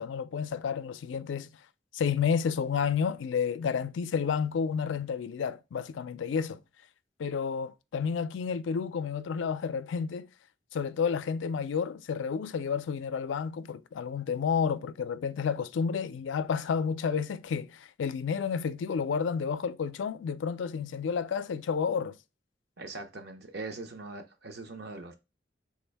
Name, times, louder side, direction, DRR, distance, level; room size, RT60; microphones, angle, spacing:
voice 1, 0.0-1.5 1.9-6.6 7.2-10.3 10.7-22.1, left 6 dB, 85° left, 0.4 m, -30 dB
voice 2, 22.8-25.1, right 3 dB, 60° right, 0.7 m, -41 dB
3.6 x 2.6 x 3.3 m
head